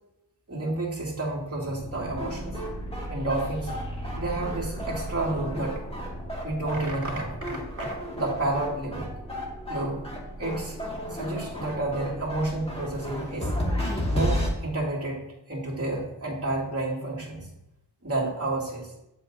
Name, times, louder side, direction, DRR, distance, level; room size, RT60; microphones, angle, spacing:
voice 1, 0.5-2.6 3.1-3.7 4.1-5.8 6.4-9.1 9.7-10.0 10.4-10.8 11.1-13.5 14.1-15.2 15.5-17.5 18.0-19.0, right 2 dB, 30° right, -4 dB, 2.5 m, -30 dB
sound 1, 1.6-14.5, equal, 15° left, 1.8 m, -33 dB
7.8 x 7.7 x 2.6 m, 0.88 s
wide cardioid pair, 70°, 44 cm